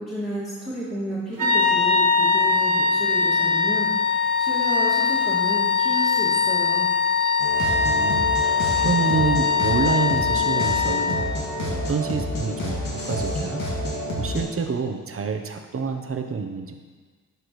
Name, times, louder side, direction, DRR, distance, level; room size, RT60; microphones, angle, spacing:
voice 1, 0.0-6.9, equal, ahead, -10 dB, 2.0 m, -32 dB
sound 1, 1.4-11.4, left 5 dB, 60° right, 1.2 m, -21 dB
sound 2, 7.4-14.4, equal, 65° left, 2.2 m, -28 dB
voice 2, 7.8-11.2 11.6-12.8 13.1-13.6 14.2-16.8, right 5 dB, 40° right, 5 dB, 0.9 m, -27 dB
11.5 x 4.6 x 3.2 m, 1.5 s
supercardioid pair, 55°, 35 cm